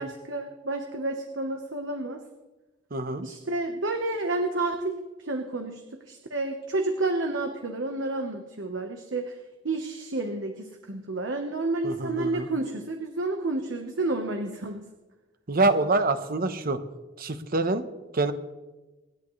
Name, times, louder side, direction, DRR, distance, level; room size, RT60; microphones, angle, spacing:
voice 1, 0.0-2.2 3.2-9.4 9.6-14.8, right 2 dB, 75° right, 4 dB, 1.2 m, -30 dB
voice 2, 2.9-3.2 11.8-12.5 15.5-16.8 17.2-17.8 18.1-18.3, right 2 dB, 50° right, 10 dB, 1.0 m, -25 dB
27.5 x 11.0 x 3.2 m, 1.1 s
head